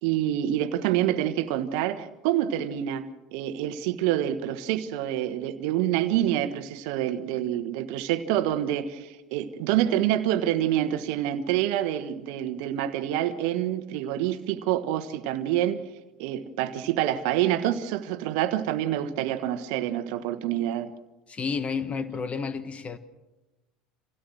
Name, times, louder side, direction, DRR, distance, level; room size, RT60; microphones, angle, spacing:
voice 1, 0.0-15.8 16.2-20.9, right 12 dB, 70° right, 1.4 m, -27 dB
voice 2, 21.3-23.0, left 5 dB, 30° left, 1.3 m, -31 dB
26.5 x 17.0 x 6.3 m
hypercardioid pair, 80°, 4 cm